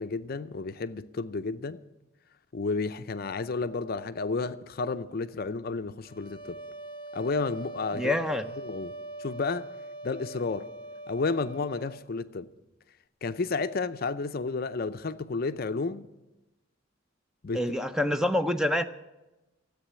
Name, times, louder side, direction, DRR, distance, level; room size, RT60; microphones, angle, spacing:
voice 1, 0.0-1.8 2.5-6.6 7.1-8.1 8.6-8.9 9.2-9.7 10.0-10.7 11.1-12.5 13.2-16.1 17.4-17.6, left 4 dB, 45° left, 0.5 m, -31 dB
sound 1, 6.0-12.1, right 2 dB, 25° left, 1.0 m, -42 dB
voice 2, 7.9-8.5 17.5-18.8, left 1 dB, 5° right, 0.5 m, -26 dB
13.5 x 8.2 x 9.9 m
head